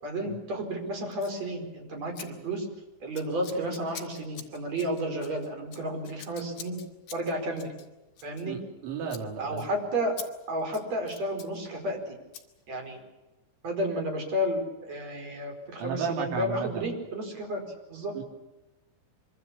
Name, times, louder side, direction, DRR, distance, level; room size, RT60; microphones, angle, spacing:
voice 1, 0.0-2.7 3.0-6.8 7.1-7.7 8.2-8.6 9.4-10.2 10.5-12.2 12.7-13.0 13.6-17.6 17.9-18.1, equal, 35° right, 3 dB, 5.5 m, -32 dB
Scissors, 1.1-1.4 2.1-2.3 2.5-2.8 3.1-8.8 9.1-9.3 9.6-9.7 10.2-10.3 10.6-11.5 12.3-12.5, left 9 dB, 55° left, 3.6 m, -45 dB
voice 2, 8.5-9.7 15.8-16.9 18.1-18.2, right 5 dB, 70° right, 2 dB, 5.8 m, -33 dB
25.0 x 24.5 x 7.3 m, 1.0 s
omnidirectional pair, 5.5 m